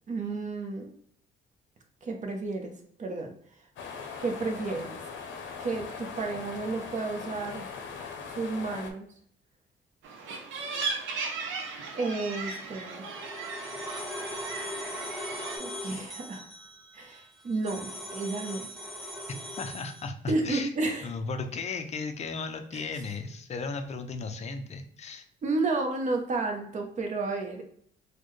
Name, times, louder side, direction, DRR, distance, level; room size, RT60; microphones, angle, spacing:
voice 1, 0.1-0.9 2.0-2.7 3.0-3.3 4.2-5.0 5.6-7.7 8.4-9.1 11.9-13.1 15.6-16.5 16.9-18.7 20.3-21.0 22.7-22.9 25.4-27.6, right 3 dB, 40° right, 3 dB, 0.8 m, -31 dB
sound 1, 3.8-8.9, left 5 dB, 70° left, 0.7 m, -40 dB
sound 2, 10.0-15.6, right 4 dB, 75° right, 0.7 m, -36 dB
sound 3, 12.6-20.1, left 1 dB, ahead, 0.7 m, -40 dB
voice 2, 19.6-20.7 21.0-25.3, left 4 dB, 35° left, 7 dB, 0.5 m, -35 dB
4.1 x 2.1 x 3.1 m, 0.65 s
cardioid pair, 130°, 20 cm